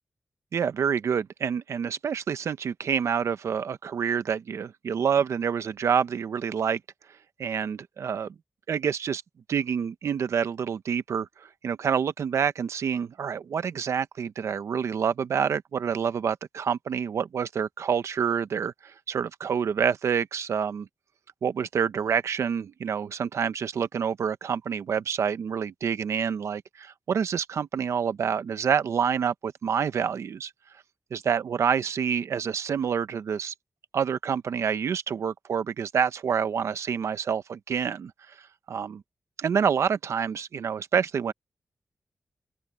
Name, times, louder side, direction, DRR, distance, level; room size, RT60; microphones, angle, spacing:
voice 1, 0.5-6.8 7.4-8.3 8.7-9.2 9.5-20.9 21.4-30.5 31.1-33.5 33.9-38.3 38.7-39.0 39.4-41.3, right 7 dB, 85° right, 0.8 m, -27 dB
open air
wide cardioid pair, 100°, 5 cm